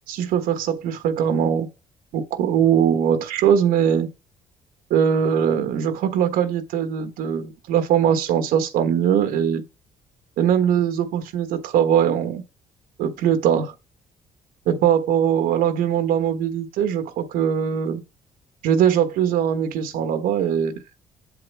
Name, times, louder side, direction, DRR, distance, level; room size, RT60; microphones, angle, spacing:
voice 1, 0.1-1.7 2.1-4.1 4.9-9.6 10.4-12.4 13.0-13.7 14.7-18.0 18.6-20.8, right 8 dB, 85° right, 1.4 m, -21 dB
8.1 x 7.8 x 3.5 m
cardioid pair, 175°, 14 cm